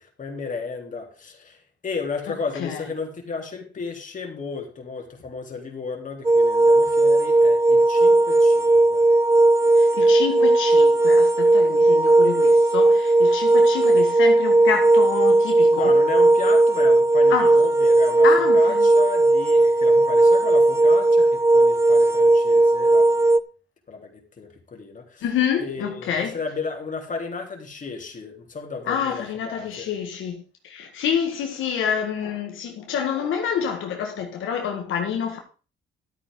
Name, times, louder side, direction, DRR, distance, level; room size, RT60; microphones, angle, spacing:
voice 1, 0.0-1.6 1.8-9.0 15.6-23.3 23.9-25.3 25.6-29.9, left 4 dB, 40° left, 3.3 m, -33 dB
sound 1, 6.2-23.4, right 2 dB, 15° right, 0.6 m, -17 dB
voice 2, 9.7-16.0 17.3-17.6 18.2-18.9 25.2-26.4 28.9-35.4, left 8 dB, 80° left, 1.7 m, -27 dB
12.5 x 8.9 x 3.8 m
cardioid pair, 90°, 20 cm